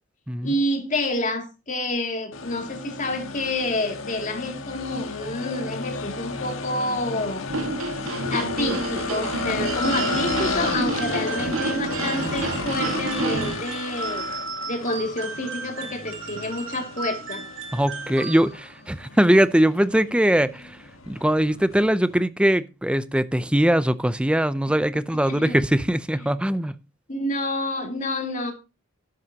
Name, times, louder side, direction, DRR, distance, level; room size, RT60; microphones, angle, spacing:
voice 1, 0.4-7.5 8.3-14.2 14.7-17.5 25.2-25.6 27.1-28.5, left 1 dB, 40° left, 2.6 m, -28 dB
sound 1, 2.3-22.2, left 4 dB, 80° left, 1.6 m, -33 dB
sound 2, 7.5-13.6, right 3 dB, 90° right, 1.8 m, -29 dB
sound 3, 9.8-18.8, right 4 dB, 65° right, 2.9 m, -35 dB
voice 2, 17.7-20.8 21.1-26.7, right 1 dB, 5° right, 0.6 m, -21 dB
12.5 x 11.0 x 2.9 m
head